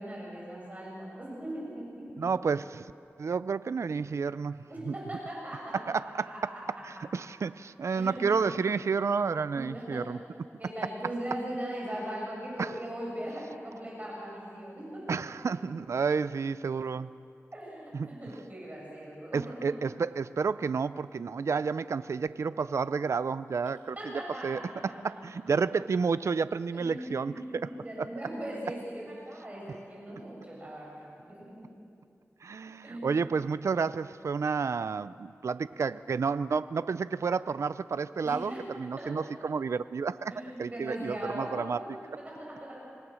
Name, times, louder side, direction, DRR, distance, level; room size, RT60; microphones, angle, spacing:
voice 1, 0.0-2.2 4.7-5.9 6.3-6.6 7.9-8.3 9.5-10.0 10.6-15.2 17.5-19.5 24.0-24.7 26.7-30.9 31.2-31.3 32.8-33.1 38.2-38.6 39.0-39.1 40.3-41.6 41.9-42.7, right 1 dB, 30° right, -4 dB, 7.5 m, -39 dB
voice 2, 2.2-2.9 3.2-4.9 5.9-6.3 6.8-10.2 12.6-12.7 15.1-17.1 17.9-18.2 19.3-24.0 24.4-24.6 25.0-27.7 28.0-28.1 32.4-38.5 38.8-40.3 40.6-41.8, right 5 dB, 70° right, 15 dB, 0.4 m, -30 dB
25.5 x 19.0 x 6.3 m, 2.4 s
wide cardioid pair, 85°, 5 cm